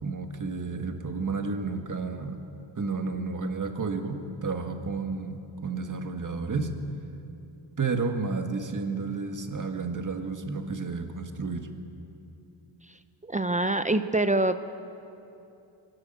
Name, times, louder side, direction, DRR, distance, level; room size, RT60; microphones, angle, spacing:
voice 1, 0.0-2.4 2.8-6.7 7.8-11.7, right 4 dB, 40° right, 5 dB, 1.8 m, -31 dB
voice 2, 13.2-14.6, right 2 dB, 15° right, 10 dB, 0.6 m, -25 dB
23.0 x 12.5 x 9.0 m, 2.8 s
cardioid pair, 100°, 49 cm